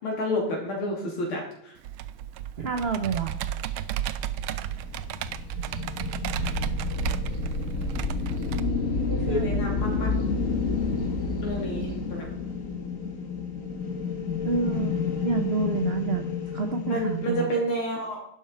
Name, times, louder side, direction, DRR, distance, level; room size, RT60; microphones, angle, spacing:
voice 1, 0.0-1.8 9.3-10.1 11.4-12.3 16.9-18.2, equal, 85° left, -2 dB, 3.7 m, -29 dB
Computer keyboard, 1.8-8.6, right 11 dB, 80° right, 1.4 m, -33 dB
voice 2, 2.6-3.3 9.1-9.6 14.4-14.9 15.2-16.3 16.5-17.5, right 5 dB, 50° right, 6 dB, 0.7 m, -28 dB
sound 1, 3.2-12.1, left 2 dB, 10° right, 1.8 m, -40 dB
sound 2, 3.9-17.3, left 4 dB, 45° left, 1.6 m, -30 dB
11.5 x 10.5 x 4.5 m, 0.75 s
omnidirectional pair, 2.3 m